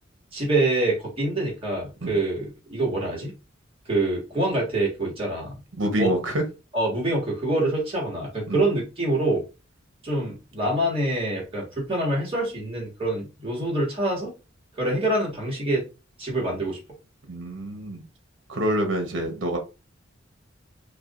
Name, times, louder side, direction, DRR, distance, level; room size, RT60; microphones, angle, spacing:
voice 1, 0.3-3.3 3.9-5.5 6.0-6.1 6.7-9.4 10.0-14.3 14.7-15.8 16.2-16.8, right 2 dB, 30° right, -4 dB, 1.6 m, -25 dB
voice 2, 5.8-6.4 8.5-8.6 17.3-18.0 18.5-19.6, right 1 dB, 70° right, 4 dB, 1.0 m, -26 dB
4.7 x 2.5 x 2.5 m, 0.29 s
head